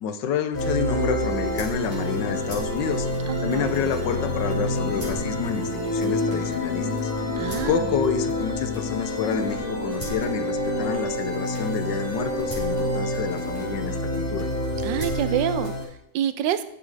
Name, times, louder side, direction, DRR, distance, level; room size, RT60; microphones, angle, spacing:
voice 1, 0.0-3.1 3.4-7.1 7.7-14.5, left 7 dB, 75° left, 10 dB, 1.4 m, -28 dB
sound 1, 0.5-15.8, left 1 dB, 20° left, 4.4 m, -27 dB
voice 2, 3.3-3.7 7.4-7.9 14.8-16.6, right 11 dB, 80° right, 13 dB, 1.3 m, -27 dB
10.5 x 7.4 x 4.8 m, 0.78 s
omnidirectional pair, 2.0 m